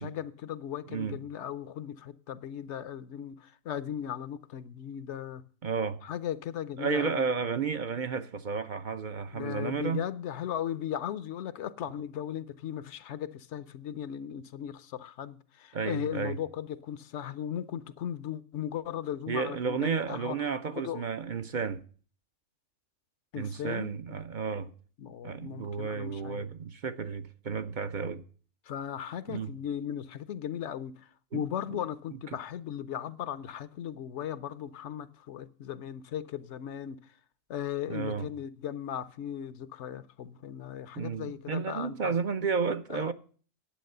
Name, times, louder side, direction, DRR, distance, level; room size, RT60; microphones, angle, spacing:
voice 1, 0.0-5.4 6.0-7.2 9.3-20.4 20.7-21.0 23.3-23.9 25.0-26.5 28.7-37.0 37.5-42.1 42.9-43.1, left 10 dB, 65° left, 0.9 m, -37 dB
voice 2, 5.6-6.0 6.8-10.0 15.7-16.4 19.3-21.8 23.4-24.7 25.2-28.2 29.3-29.5 31.3-31.4 31.7-31.8 37.9-38.3 40.9-43.1, right 5 dB, 50° right, 0.6 m, -32 dB
10.0 x 8.2 x 6.6 m
omnidirectional pair, 1.3 m